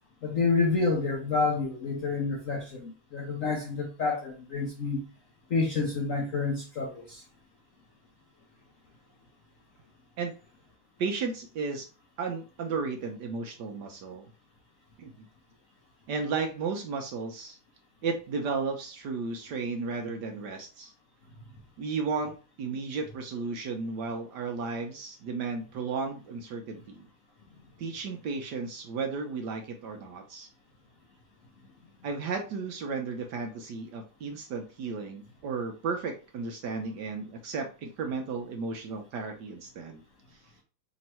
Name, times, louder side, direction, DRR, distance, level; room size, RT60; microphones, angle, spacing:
voice 1, 0.2-5.0 5.5-7.2, left 4 dB, 65° left, 0.8 m, -28 dB
voice 2, 11.0-11.9 12.2-14.3 15.0-15.3 16.1-17.6 18.0-20.9 21.8-27.1 27.8-30.5 32.0-40.0, right 4 dB, 70° right, 1.1 m, -34 dB
3.5 x 3.0 x 4.2 m
omnidirectional pair, 2.2 m